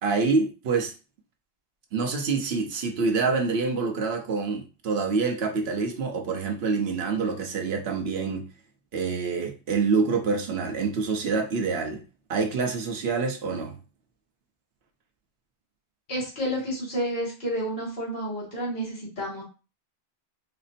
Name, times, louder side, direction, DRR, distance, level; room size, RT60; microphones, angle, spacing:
voice 1, 0.0-0.9 1.9-8.5 8.9-12.0 12.3-13.7, right 4 dB, 70° right, 1.0 m, -26 dB
voice 2, 16.1-19.4, equal, 55° left, 2.0 m, -30 dB
4.3 x 2.0 x 4.1 m
omnidirectional pair, 1.1 m